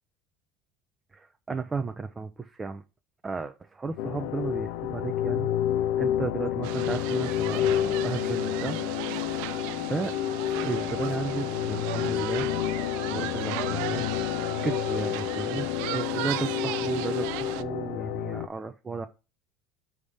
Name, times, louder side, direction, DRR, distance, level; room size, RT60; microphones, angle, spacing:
voice 1, 1.1-2.8 3.2-5.5 5.8-8.8 9.3-12.5 13.1-19.1, right 4 dB, 20° right, 7 dB, 0.5 m, -34 dB
sound 1, 4.0-18.5, left 12 dB, 80° left, 0.4 m, -29 dB
sound 2, 6.6-17.6, right 16 dB, 80° right, 0.3 m, -36 dB
4.9 x 3.5 x 5.5 m, 0.29 s
supercardioid pair, 115°, 0 cm